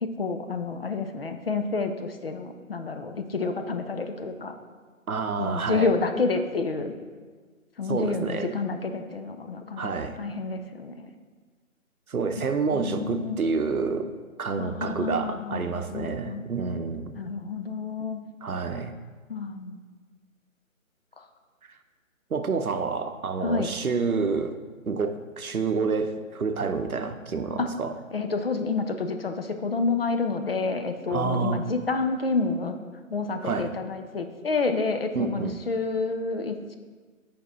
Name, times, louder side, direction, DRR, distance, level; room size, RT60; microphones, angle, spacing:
voice 1, 0.0-4.5 5.4-6.9 7.8-11.1 12.7-13.4 14.6-16.4 17.2-18.2 19.3-19.8 21.2-21.3 23.4-23.7 27.6-27.7 28.1-32.8 33.1-36.8, left 4 dB, 45° left, 7 dB, 0.6 m, -29 dB
voice 2, 5.1-5.9 7.9-8.5 9.8-10.2 12.1-14.1 14.4-17.2 18.4-18.9 22.3-24.6 24.9-28.0 31.1-31.6 33.4-33.7 35.1-35.6, right 4 dB, 90° right, 8 dB, 0.8 m, -28 dB
7.7 x 5.2 x 4.3 m, 1.5 s
figure-of-eight pair, 155°, 42 cm